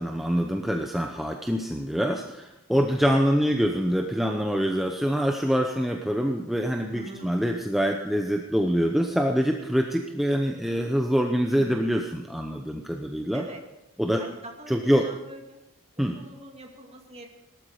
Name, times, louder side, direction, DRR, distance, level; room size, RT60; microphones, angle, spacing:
voice 1, 0.0-13.4 14.0-14.2 14.7-15.1 16.0-16.2, equal, ahead, 3 dB, 0.8 m, -25 dB
voice 2, 6.9-7.3 11.5-11.9 13.3-13.6 14.1-15.6 16.0-17.3, right 1 dB, 30° right, 2 dB, 2.2 m, -43 dB
18.5 x 13.0 x 5.0 m, 0.95 s
head